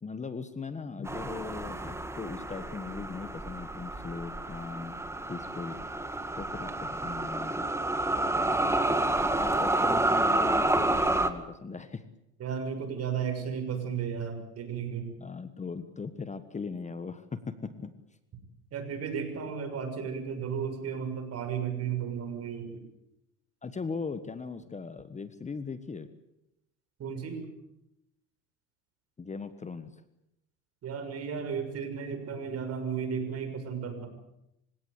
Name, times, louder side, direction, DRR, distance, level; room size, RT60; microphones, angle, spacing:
voice 1, 0.0-5.0 5.3-5.8 6.3-7.7 9.2-12.0 15.2-17.9 23.6-26.1 29.2-30.0, left 5 dB, 20° left, 12 dB, 1.4 m, -39 dB
sound 1, 1.1-11.3, right 2 dB, 10° right, 2.1 m, -29 dB
voice 2, 12.4-15.1 18.7-22.8 27.0-27.5 30.8-34.1, right 7 dB, 45° right, 7 dB, 6.6 m, -34 dB
27.0 x 17.0 x 8.4 m, 0.84 s
supercardioid pair, 95°, 34 cm